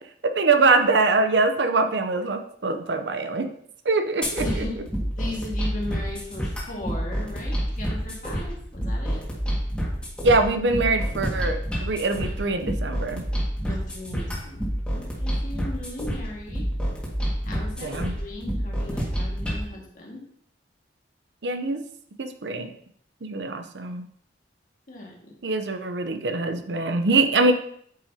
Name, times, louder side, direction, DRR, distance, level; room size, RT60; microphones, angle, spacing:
voice 1, 0.2-3.5 3.8-4.4 10.2-13.2 17.8-18.1 21.4-21.8 22.2-22.7 23.2-24.1 25.4-27.5, right 3 dB, 85° right, 8 dB, 0.7 m, -23 dB
sound 1, 4.2-19.6, equal, 5° left, 1.8 m, -28 dB
voice 2, 4.4-4.8 5.2-9.2 13.7-14.6 14.9-16.7 17.5-20.2 24.9-25.3, left 1 dB, 50° left, -1 dB, 1.9 m, -37 dB
8.7 x 6.0 x 2.8 m, 0.65 s
head